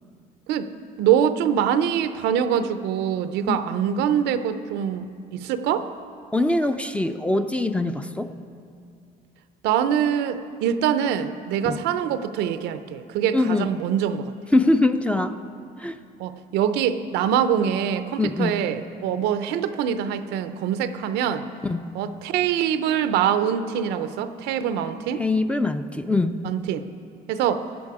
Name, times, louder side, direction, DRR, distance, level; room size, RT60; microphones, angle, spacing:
voice 1, 1.0-5.9 9.6-14.3 16.2-21.4 21.9-25.2 26.4-26.8 27.3-27.7, right 9 dB, 90° right, 11 dB, 0.6 m, -24 dB
voice 2, 6.3-8.3 11.6-11.8 13.3-13.7 14.5-15.3 15.8-16.0 18.2-18.6 21.7-21.8 25.2-26.4, left 2 dB, 5° left, 9 dB, 0.5 m, -22 dB
16.0 x 10.0 x 4.8 m, 2.4 s
cardioid pair, 110°, 17 cm